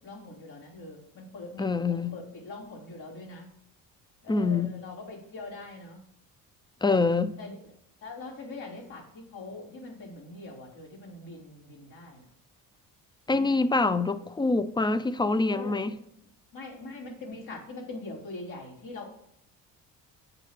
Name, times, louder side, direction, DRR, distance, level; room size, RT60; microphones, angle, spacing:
voice 1, 0.0-3.5 4.2-6.0 6.9-7.0 7.4-7.6 8.0-12.2 15.5-16.0 16.5-19.1, left 2 dB, 65° left, 3.5 m, -42 dB
voice 2, 1.6-2.1 4.3-4.8 6.8-7.3 13.3-16.0, left 3 dB, 15° left, 0.3 m, -25 dB
8.6 x 3.2 x 6.5 m
cardioid pair, 95°, 35 cm